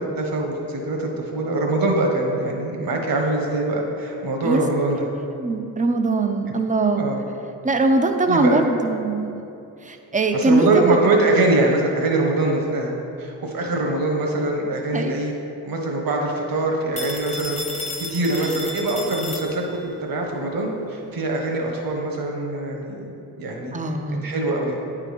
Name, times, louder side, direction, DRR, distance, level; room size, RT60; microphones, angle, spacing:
voice 1, 0.0-5.1 6.9-7.2 8.3-8.6 10.3-12.9 13.2-15.3 15.6-17.6 18.1-23.1 23.4-23.7 24.2-24.8, right 2 dB, 60° right, 1 dB, 1.3 m, -23 dB
voice 2, 4.9-7.0 7.6-9.4 9.8-11.0 14.9-15.2 23.7-24.3, right 2 dB, 20° right, 5 dB, 0.6 m, -22 dB
Telephone, 17.0-20.0, left 2 dB, 15° left, 0.7 m, -33 dB
8.8 x 3.8 x 5.0 m, 2.7 s
cardioid pair, 65°, 40 cm